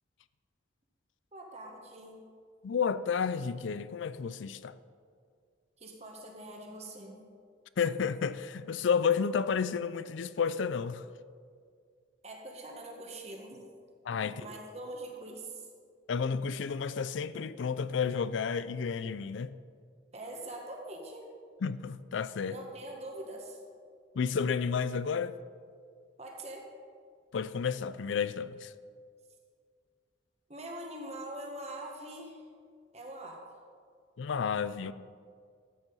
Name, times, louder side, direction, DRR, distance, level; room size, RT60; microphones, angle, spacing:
voice 1, 1.3-2.2 5.8-7.2 12.2-13.6 14.4-15.7 20.1-21.3 22.5-23.6 26.2-26.7 30.5-32.5 32.9-33.4, right 1 dB, 35° right, 1.7 m, -43 dB
voice 2, 2.6-4.7 7.8-11.0 14.1-14.3 16.1-19.6 21.6-22.5 24.2-25.3 27.3-28.7 34.2-34.9, left 6 dB, 80° left, 0.4 m, -31 dB
13.0 x 8.0 x 5.5 m
head